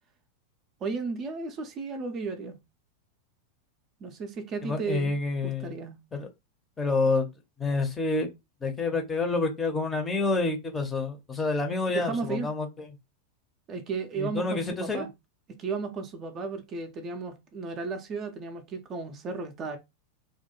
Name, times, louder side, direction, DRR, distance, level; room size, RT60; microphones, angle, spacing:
voice 1, 0.8-2.6 4.0-5.1 5.4-6.0 11.9-12.5 13.7-15.1 15.6-19.8, right 4 dB, 30° right, 0.4 m, -34 dB
voice 2, 4.6-5.7 6.1-6.3 6.8-7.3 7.6-8.3 8.6-12.9 14.2-15.1, left 3 dB, 15° left, 0.6 m, -28 dB
2.4 x 2.1 x 2.8 m
figure-of-eight pair, 90°, 0 cm